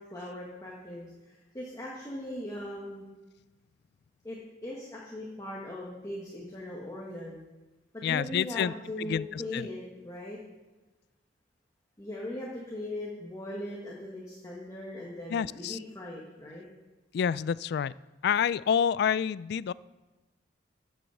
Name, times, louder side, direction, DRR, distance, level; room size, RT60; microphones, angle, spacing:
voice 1, 0.0-3.1 4.2-7.5 7.9-10.4 12.0-16.7, left 1 dB, 20° left, -4 dB, 1.6 m, -39 dB
voice 2, 8.0-8.7 9.0-9.6 15.3-15.8 17.1-17.9 18.2-19.7, left 7 dB, 60° left, 21 dB, 0.3 m, -28 dB
13.5 x 6.2 x 7.1 m, 1.1 s
head